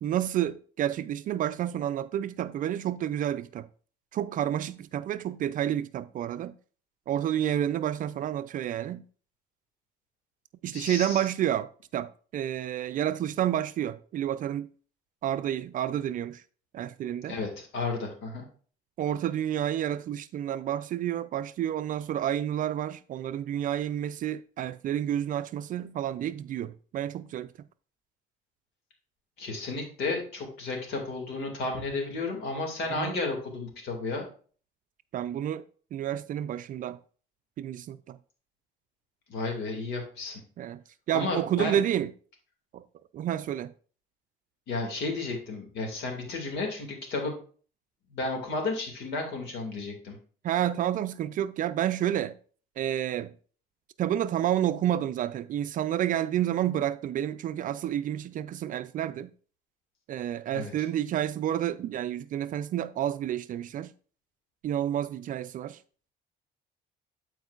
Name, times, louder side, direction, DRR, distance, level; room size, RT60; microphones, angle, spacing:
voice 1, 0.0-3.7 4.1-6.6 7.1-9.0 10.6-14.7 15.2-16.4 16.7-17.4 19.0-27.5 32.9-33.2 35.1-35.6 35.9-37.0 37.6-38.2 40.6-40.8 41.1-42.1 42.7-42.8 43.1-43.7 50.4-52.4 52.8-53.3 54.0-59.3 60.1-63.9 64.6-65.8, right 11 dB, 50° right, 0.4 m, -30 dB
voice 2, 10.7-11.2 17.3-18.4 29.4-34.3 39.3-40.4 41.1-41.8 44.7-47.4 48.1-50.2 60.5-60.7, left 3 dB, 75° left, 2.2 m, -33 dB
12.5 x 4.6 x 2.4 m
cardioid pair, 110°, 17 cm